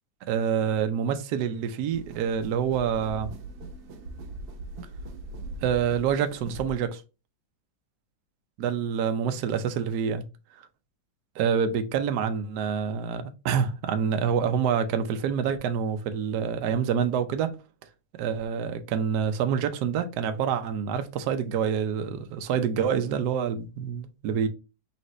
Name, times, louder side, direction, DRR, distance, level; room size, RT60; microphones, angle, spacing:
voice 1, 0.3-3.3 5.6-7.0 8.6-10.3 10.6-10.7 11.4-17.5 18.2-24.5, right 7 dB, 70° right, 1.1 m, -27 dB
sound 1, 1.9-6.9, right 2 dB, 90° right, 1.6 m, -40 dB
4.1 x 3.3 x 3.1 m
omnidirectional pair, 2.1 m